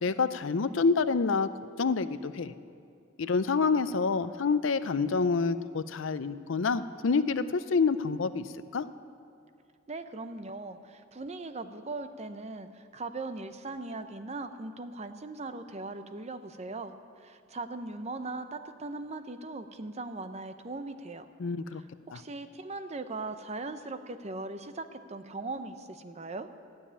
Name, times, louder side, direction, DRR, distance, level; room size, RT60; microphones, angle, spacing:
voice 1, 0.0-1.5 1.8-2.5 3.2-8.4 8.7-8.9 21.4-21.8 22.1-22.2, left 4 dB, 70° left, 13 dB, 0.5 m, -27 dB
voice 2, 9.9-21.3 21.7-26.5, right 3 dB, 35° right, 10 dB, 0.6 m, -39 dB
15.0 x 7.2 x 9.9 m, 2.4 s
head